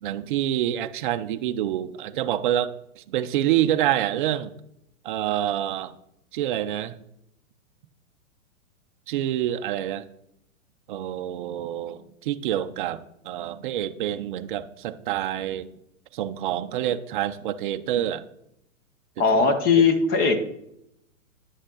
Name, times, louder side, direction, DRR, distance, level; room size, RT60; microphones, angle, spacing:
voice 1, 0.0-4.5 5.0-5.9 6.3-7.0 9.1-10.1 10.9-15.7 16.1-18.2, right 12 dB, 35° right, 10 dB, 0.5 m, -27 dB
voice 2, 19.2-20.5, left 5 dB, 20° left, 8 dB, 0.9 m, -19 dB
9.9 x 6.3 x 3.8 m, 0.77 s
hypercardioid pair, 135°, 43 cm